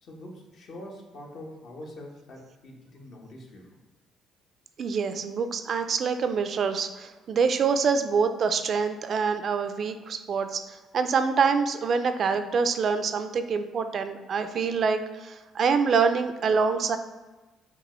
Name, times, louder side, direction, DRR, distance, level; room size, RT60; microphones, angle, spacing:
voice 1, 0.0-3.8, left 1 dB, 60° left, 0 dB, 1.0 m, -44 dB
voice 2, 4.8-17.0, right 5 dB, 55° right, 8 dB, 0.3 m, -26 dB
5.2 x 2.4 x 3.0 m, 1.2 s
supercardioid pair, 75°, 0 cm